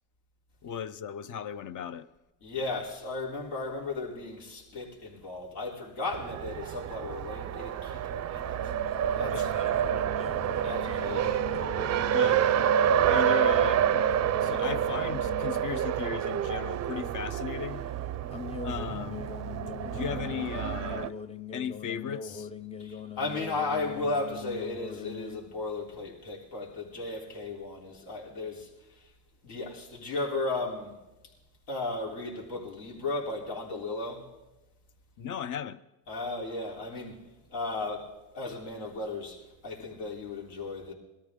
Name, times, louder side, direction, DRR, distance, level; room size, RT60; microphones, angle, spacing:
voice 1, 0.6-2.1 9.3-9.5 9.8-10.1 11.2-11.4 12.1-12.4 13.1-14.0 14.4-17.8 18.6-19.2 19.8-21.2 21.5-22.5 35.2-35.8, left 8 dB, 45° left, 0.7 m, -36 dB
voice 2, 2.4-8.7 9.2-9.5 10.6-11.4 22.8-28.7 29.4-31.0 31.7-34.3 36.1-37.2 37.5-38.1 38.3-40.9, left 3 dB, 75° left, 3.6 m, -35 dB
Race car auto racing, 6.1-21.1, right 10 dB, 40° right, 0.5 m, -28 dB
sound 1, 8.6-15.7 16.0-16.4 18.3-25.4, left 6 dB, 15° left, 0.4 m, -41 dB
20.5 x 13.5 x 3.7 m
supercardioid pair, 95°, 44 cm